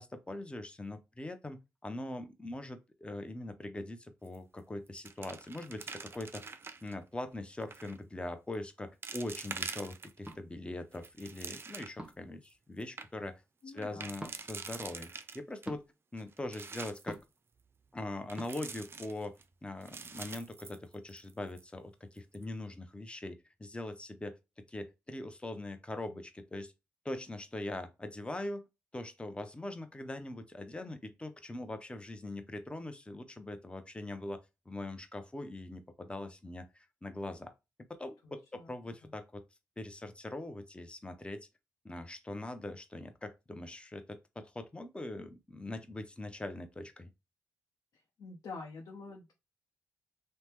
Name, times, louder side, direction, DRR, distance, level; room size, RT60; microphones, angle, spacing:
voice 1, 0.0-6.5 6.8-15.8 16.1-17.2 17.9-24.4 24.7-26.7 27.0-28.6 28.9-34.4 34.7-37.5 37.9-39.4 39.8-41.5 41.8-47.1, left 1 dB, 15° left, 0.6 m, -42 dB
sound 1, 4.3-4.6 4.9-6.9 7.6-8.0 8.5-8.6 9.0-10.3 10.8-12.1 12.5-12.6 12.8-13.1 13.8-15.7 16.2-17.1 18.3-19.4 19.8-21.3 21.6-21.7 22.2-22.4, right 4 dB, 40° right, 0.4 m, -45 dB
sound 2, 10.2-10.4 12.0-12.3 14.2-14.4 15.6-15.9 17.1-17.4 18.4-18.5, equal, 15° right, 0.8 m, -42 dB
voice 2, 13.6-14.1 38.2-38.7 39.0-39.1 48.2-49.3, left 3 dB, 70° left, 0.7 m, -47 dB
2.8 x 2.1 x 3.4 m
supercardioid pair, 50°, 6 cm